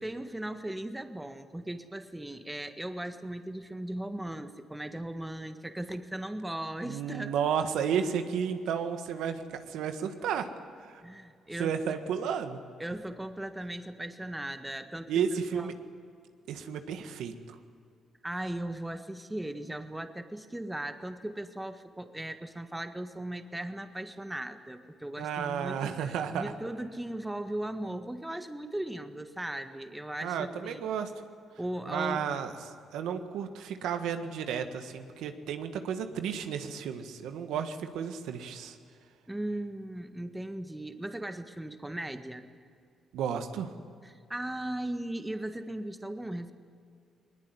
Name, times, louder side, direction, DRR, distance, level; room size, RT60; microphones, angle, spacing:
voice 1, 0.0-7.3 11.0-12.0 12.8-15.3 15.5-15.7 18.2-30.8 31.6-32.2 39.3-42.5 44.0-46.5, right 1 dB, 10° right, 9 dB, 1.6 m, -38 dB
voice 2, 6.8-10.5 10.8-11.0 11.6-12.6 15.1-15.7 16.5-17.3 25.2-26.5 30.2-31.1 31.9-32.5 32.9-38.8 43.1-43.7, right 7 dB, 85° right, 8 dB, 1.6 m, -32 dB
21.0 x 20.5 x 9.8 m, 2.3 s
cardioid pair, 90°, 0 cm